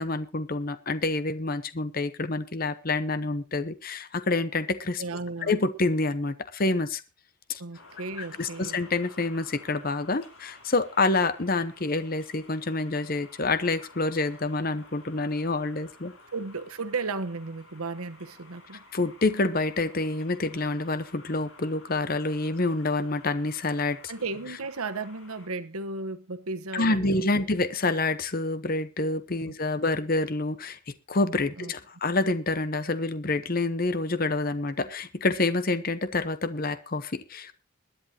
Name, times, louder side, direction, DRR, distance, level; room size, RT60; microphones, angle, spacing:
voice 1, 0.0-5.0 5.4-7.0 7.5-7.6 8.4-16.1 18.9-24.1 26.7-30.8 31.1-37.6, left 2 dB, 40° left, 0.9 m, -27 dB
voice 2, 5.0-5.5 7.6-8.8 16.3-18.8 24.1-27.3 29.4-29.5 31.6-31.7, right 3 dB, 90° right, 1.2 m, -34 dB
sound 1, 7.7-25.5, left 2 dB, 80° left, 4.9 m, -53 dB
22.0 x 10.5 x 2.9 m
head